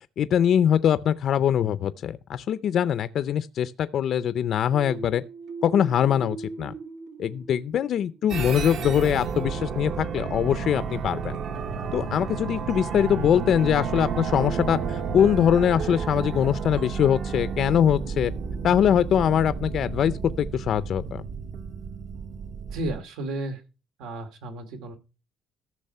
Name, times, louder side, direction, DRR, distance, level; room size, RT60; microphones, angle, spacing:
voice 1, 0.2-5.2 5.6-6.7 7.2-11.3 11.9-18.3 18.6-21.2, left 9 dB, 50° left, 0.5 m, -23 dB
sound 1, 4.7-8.4, right 4 dB, 70° right, 1.2 m, -40 dB
sound 2, 8.3-23.0, right 6 dB, 50° right, 1.0 m, -31 dB
voice 2, 22.7-23.6 24.0-25.0, right 1 dB, 90° right, 2.4 m, -33 dB
14.0 x 6.3 x 5.4 m
cardioid pair, 160°, 0 cm